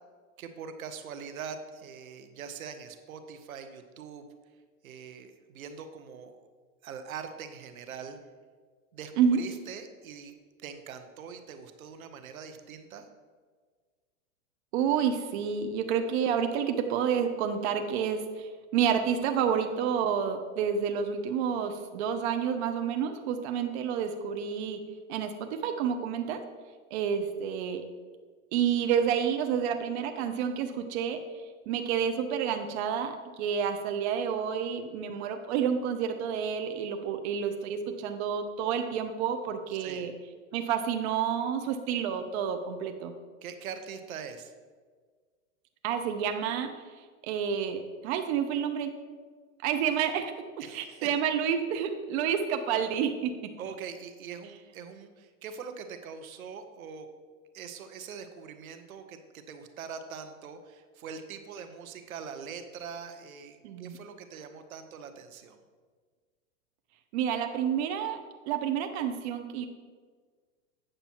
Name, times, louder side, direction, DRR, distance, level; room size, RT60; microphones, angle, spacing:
voice 1, 0.4-4.3 4.8-6.4 6.8-8.2 8.9-10.3 10.6-13.1 39.7-40.1 43.4-44.5 50.6-51.1 53.6-57.1 57.5-65.6, right 6 dB, 85° right, 8 dB, 1.1 m, -43 dB
voice 2, 14.7-24.8 25.1-26.4 26.9-27.9 28.5-40.1 40.5-43.2 45.8-46.7 47.0-48.9 49.6-50.3 50.7-53.5 63.6-64.0 67.1-68.2 68.5-69.7, right 7 dB, 50° right, 7 dB, 0.8 m, -29 dB
8.9 x 6.7 x 4.4 m, 1.6 s
hypercardioid pair, 130°, 41 cm